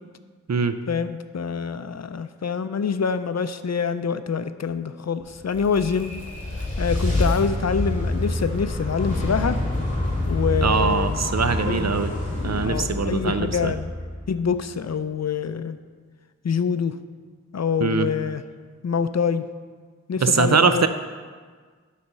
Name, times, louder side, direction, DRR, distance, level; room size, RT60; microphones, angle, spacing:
voice 1, 0.9-6.1 6.6-9.6 10.3-11.2 11.6-12.0 12.6-13.9 14.3-15.8 16.4-17.0 17.5-18.4 18.8-19.5 20.1-20.9, left 6 dB, 60° left, 11 dB, 0.5 m, -26 dB
sound 1, 5.3-14.6, left 1 dB, 25° left, 2.3 m, -27 dB
voice 2, 10.6-12.1 12.4-13.7 17.8-18.1 20.2-20.9, right 5 dB, 60° right, 10 dB, 0.5 m, -22 dB
12.5 x 4.2 x 5.4 m, 1.5 s
wide cardioid pair, 55°, 30 cm